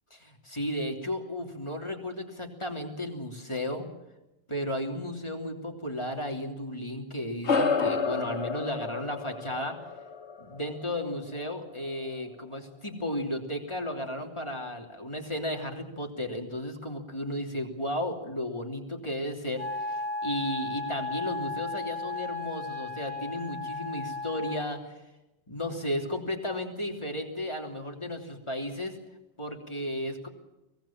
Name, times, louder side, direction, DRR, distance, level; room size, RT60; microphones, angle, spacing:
voice 1, 0.1-3.9 4.5-9.8 10.4-24.9 25.5-29.0 29.4-30.3, left 1 dB, 25° left, 2 dB, 3.1 m, -34 dB
sound 1, 7.4-12.2, left 4 dB, 80° left, 1.9 m, -31 dB
Wind instrument woodwind instrument, 19.6-24.8, left 3 dB, 65° left, 1.6 m, -35 dB
24.0 x 18.5 x 7.4 m, 0.98 s
omnidirectional pair, 1.1 m